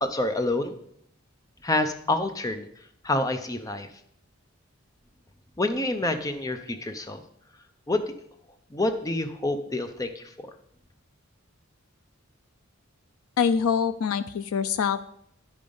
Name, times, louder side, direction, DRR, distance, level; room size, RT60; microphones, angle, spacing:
voice 1, 0.0-0.7 1.6-2.7 3.0-3.9 5.6-7.2 7.9-8.0 8.7-10.2, left 2 dB, 15° left, 8 dB, 0.5 m, -27 dB
voice 2, 13.4-15.1, left 6 dB, 85° left, 12 dB, 0.4 m, -25 dB
10.5 x 5.1 x 5.3 m, 0.71 s
head